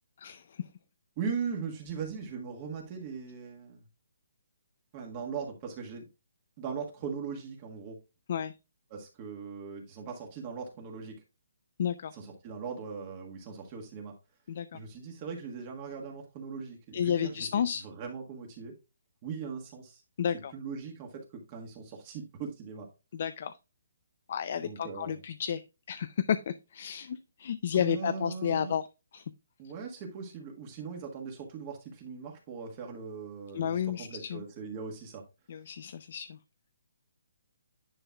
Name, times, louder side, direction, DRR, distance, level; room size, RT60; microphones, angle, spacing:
voice 1, 0.2-0.6 8.3-8.6 11.8-12.1 14.5-14.8 16.9-17.8 20.2-20.5 23.1-23.6 24.3-28.9 29.1-29.3 33.5-34.4 35.5-36.4, left 8 dB, 45° left, 0.5 m, -32 dB
voice 2, 1.2-3.8 4.9-6.0 6.6-8.0 8.9-11.1 12.1-14.1 14.7-18.7 19.2-20.0 20.5-22.9 24.6-25.2 27.7-28.7 29.6-35.2, right 6 dB, 25° right, 1.5 m, -39 dB
10.0 x 5.4 x 2.3 m
hypercardioid pair, 160°, 0 cm